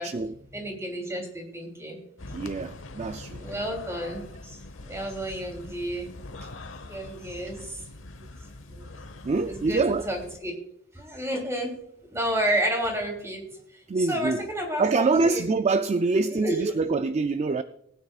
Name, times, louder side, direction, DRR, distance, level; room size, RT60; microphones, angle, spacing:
voice 1, 0.0-0.4 2.3-3.4 6.4-6.5 8.7-8.9 9.2-10.1 13.9-14.5 14.8-17.6, right 3 dB, 35° right, 0.4 m, -25 dB
voice 2, 0.5-2.0 3.4-6.1 6.9-7.8 9.5-10.5 10.9-11.8 12.1-13.4 13.7-13.8 14.1-15.5 16.2-16.6, right 1 dB, 15° right, 3.1 m, -31 dB
sound 1, 2.2-10.4, left 2 dB, 85° left, 1.1 m, -43 dB
19.5 x 9.5 x 2.4 m
head